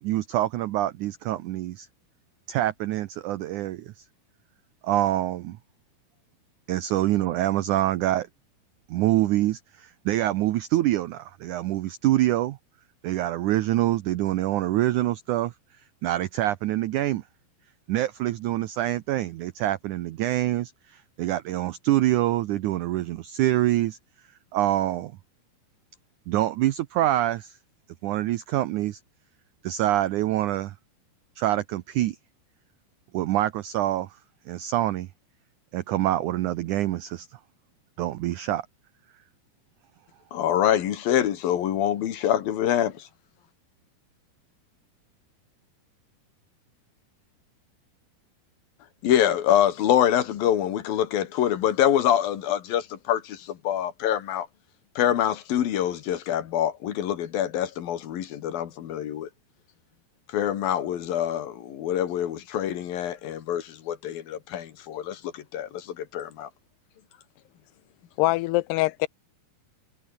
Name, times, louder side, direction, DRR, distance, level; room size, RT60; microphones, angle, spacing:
voice 1, 0.0-1.9 2.5-4.1 4.8-5.6 6.7-8.3 8.9-12.6 13.0-15.5 16.0-17.2 17.9-24.0 24.5-25.1 26.3-27.6 28.0-29.0 29.6-30.7 31.4-32.2 33.1-34.1 34.5-35.1 35.7-37.3 38.0-38.7, right 14 dB, 90° right, 1.7 m, -25 dB
voice 2, 40.3-43.0 49.0-54.5 55.0-59.3 60.3-66.5, left 10 dB, 65° left, 3.5 m, -25 dB
voice 3, 68.2-69.1, left 20 dB, 90° left, 2.8 m, -23 dB
omnidirectional pair, 4.6 m